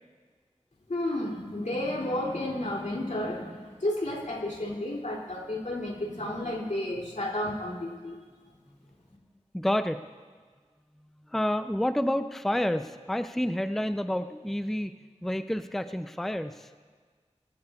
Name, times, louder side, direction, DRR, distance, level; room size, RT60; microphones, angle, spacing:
voice 1, 0.9-8.2, left 1 dB, 80° left, -2 dB, 2.7 m, -32 dB
voice 2, 9.5-10.0 11.3-14.9 15.2-16.7, left 1 dB, ahead, 9 dB, 0.4 m, -29 dB
24.0 x 13.5 x 2.4 m, 1.5 s
wide cardioid pair, 50°, 12 cm